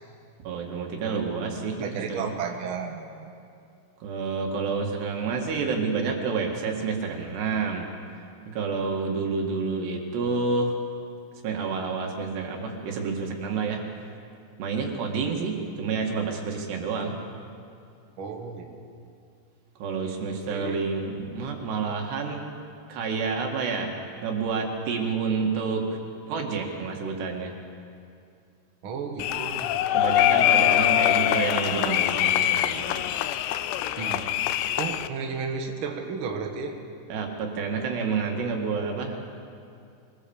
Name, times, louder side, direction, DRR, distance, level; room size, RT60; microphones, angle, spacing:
voice 1, 0.4-2.4 4.0-7.9 8.2-10.8 11.4-13.8 14.6-17.2 19.8-22.4 22.9-23.9 24.2-26.0 26.3-27.5 29.9-33.1 37.1-39.2, right 4 dB, 65° right, 2 dB, 4.0 m, -29 dB
voice 2, 1.8-3.3 18.2-18.7 20.4-20.8 28.8-29.8 34.0-34.2 34.8-36.8, right 5 dB, 90° right, 3 dB, 1.1 m, -33 dB
sound 1, 29.2-35.1, left 12 dB, 80° left, 2.6 m, -23 dB
24.0 x 19.0 x 7.2 m, 2.4 s
omnidirectional pair, 5.4 m